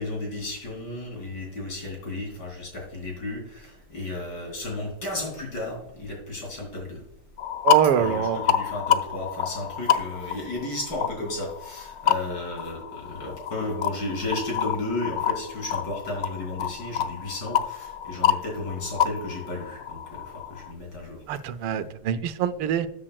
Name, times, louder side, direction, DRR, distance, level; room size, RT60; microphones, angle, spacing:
voice 1, 0.0-7.0 8.0-21.2, left 2 dB, 55° left, 0 dB, 3.8 m, -33 dB
sound 1, 7.4-20.7, left 9 dB, 70° left, 1.1 m, -28 dB
voice 2, 7.6-8.4 21.3-22.9, right 9 dB, 90° right, 12 dB, 1.6 m, -24 dB
13.0 x 8.6 x 2.3 m, 0.81 s
omnidirectional pair, 2.4 m